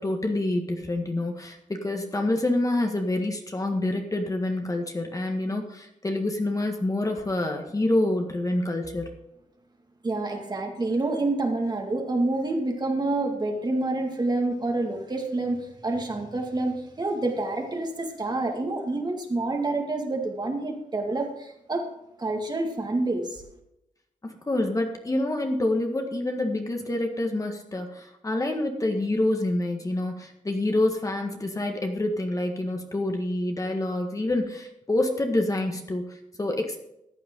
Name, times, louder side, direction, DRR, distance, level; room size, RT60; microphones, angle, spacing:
voice 1, 0.0-9.2 24.2-36.8, left 1 dB, 25° left, 3 dB, 1.7 m, -27 dB
voice 2, 10.0-15.6 15.8-21.9 22.2-23.4, right 2 dB, 30° right, 2 dB, 2.1 m, -28 dB
14.5 x 9.3 x 3.8 m, 0.84 s
wide cardioid pair, 105°, 13 cm